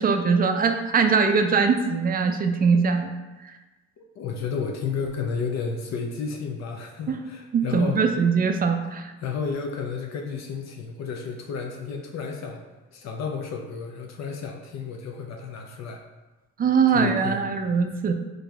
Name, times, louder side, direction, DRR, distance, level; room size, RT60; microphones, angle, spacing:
voice 1, 0.0-3.1 7.1-7.2 7.5-9.1 16.6-18.1, right 5 dB, 30° right, 6 dB, 0.4 m, -21 dB
voice 2, 4.0-8.1 9.2-12.6 12.9-16.0 16.9-17.5, left 5 dB, 60° left, 2 dB, 0.5 m, -32 dB
4.0 x 3.2 x 2.3 m, 1.1 s
cardioid pair, 90°, 30 cm